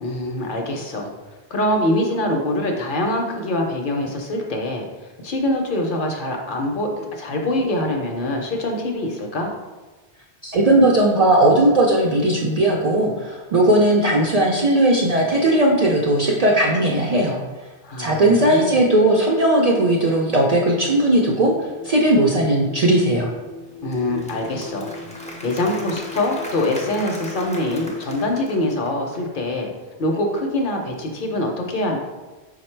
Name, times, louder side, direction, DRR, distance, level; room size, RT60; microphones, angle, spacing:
voice 1, 0.0-1.1 1.5-4.9 5.2-9.5 17.8-18.7 23.8-24.9 25.2-29.7 30.0-32.0, left 1 dB, 55° left, 1 dB, 0.7 m, -24 dB
voice 2, 10.4-17.4 18.0-23.3, right 1 dB, 55° right, -2 dB, 0.4 m, -17 dB
sound 1, 21.0-28.9, left 2 dB, 85° left, 0.9 m, -41 dB
Applause / Crowd, 23.7-29.1, left 1 dB, 10° left, 0.4 m, -39 dB
5.1 x 2.1 x 4.3 m, 1.2 s
omnidirectional pair, 1.1 m